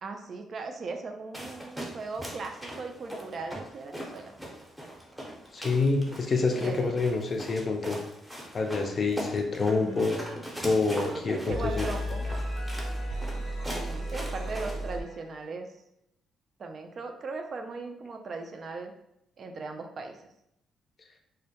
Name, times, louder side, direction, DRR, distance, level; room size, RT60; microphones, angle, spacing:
voice 1, 0.0-4.3 6.5-7.0 10.9-12.3 13.7-15.7 16.6-18.9 19.4-20.2, right 3 dB, 50° right, 5 dB, 0.3 m, -38 dB
sound 1, 1.3-15.0, equal, 5° right, 0.6 m, -41 dB
voice 2, 5.5-8.0 8.5-10.2 10.6-11.9, left 3 dB, 40° left, 3 dB, 0.4 m, -27 dB
sound 2, 9.8-10.2 10.5-15.4, equal, 90° right, 0.9 m, -35 dB
2.1 x 2.1 x 2.7 m, 0.80 s
cardioid pair, 90°, 0 cm